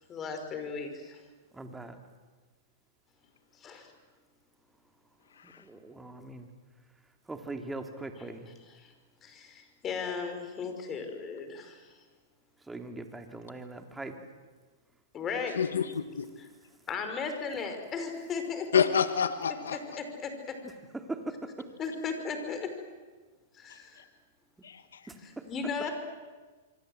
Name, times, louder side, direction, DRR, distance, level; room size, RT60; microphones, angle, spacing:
voice 1, 0.1-1.2 3.6-3.9 8.8-8.9 9.2-11.9 15.1-15.6 16.9-18.7 19.7-20.6 21.8-22.7 23.5-24.0 25.5-25.9, left 5 dB, 25° left, 6 dB, 5.3 m, -36 dB
voice 2, 1.5-2.0 5.4-6.5 7.3-8.5 12.6-14.1 17.6-17.7 20.9-21.7 25.1-25.7, right 2 dB, 10° right, 5 dB, 2.8 m, -41 dB
voice 3, 15.6-16.3 18.7-19.8 24.6-25.0, left 7 dB, 85° left, 10 dB, 1.5 m, -28 dB
27.0 x 24.0 x 8.0 m, 1.3 s
hypercardioid pair, 130°, 0 cm